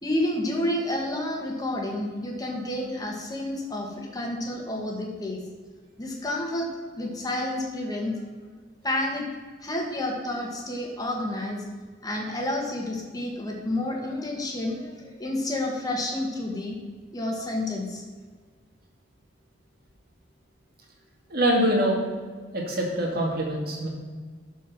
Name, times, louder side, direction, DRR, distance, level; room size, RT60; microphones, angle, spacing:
voice 1, 0.0-5.4 6.0-6.7 7.0-8.2 8.8-9.3 9.6-11.6 12.0-16.8 17.1-18.0, left 1 dB, 20° left, 0 dB, 1.6 m, -30 dB
voice 2, 21.3-22.0 22.5-23.9, right 1 dB, 50° right, -1 dB, 2.2 m, -24 dB
12.5 x 4.6 x 6.0 m, 1.5 s
head